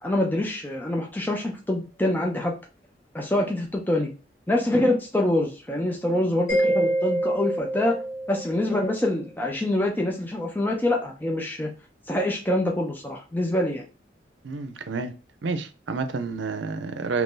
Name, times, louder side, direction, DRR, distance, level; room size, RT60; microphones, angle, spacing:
voice 1, 0.0-2.5 3.1-4.1 4.5-8.0 8.3-11.7 12.1-13.8, left 1 dB, 10° left, 0 dB, 0.4 m, -25 dB
Mallet percussion, 6.5-9.0, right 1 dB, 40° left, 1.5 m, -26 dB
voice 2, 14.4-15.1 15.4-17.2, right 4 dB, 85° right, 9 dB, 0.5 m, -29 dB
2.9 x 2.6 x 3.6 m, 0.33 s
head